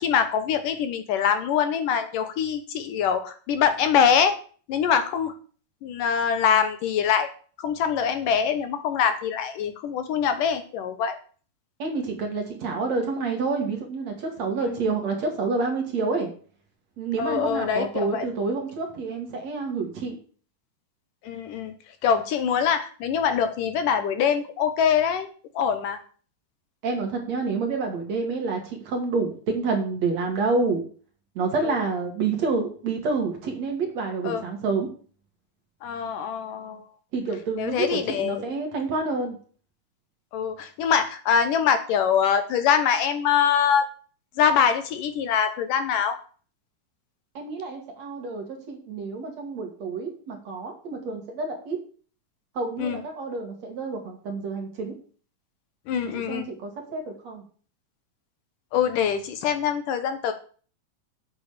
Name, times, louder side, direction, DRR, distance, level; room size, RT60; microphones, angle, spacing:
voice 1, 0.0-4.4 4.7-5.3 5.8-7.3 7.6-11.2 14.6-14.7 17.2-18.2 21.2-21.7 22.0-25.3 25.6-26.0 34.2-34.4 35.8-36.8 37.6-38.5 40.3-43.9 44.4-46.2 52.8-53.0 55.9-56.5 58.7-60.3, left 7 dB, 70° left, 9 dB, 2.4 m, -24 dB
voice 2, 11.8-16.3 17.0-20.1 26.8-30.8 31.3-34.9 37.1-39.3 47.3-51.8 52.5-54.9 56.0-57.4, right 4 dB, 50° right, 3 dB, 3.3 m, -28 dB
8.8 x 8.3 x 6.8 m, 0.42 s
omnidirectional pair, 4.2 m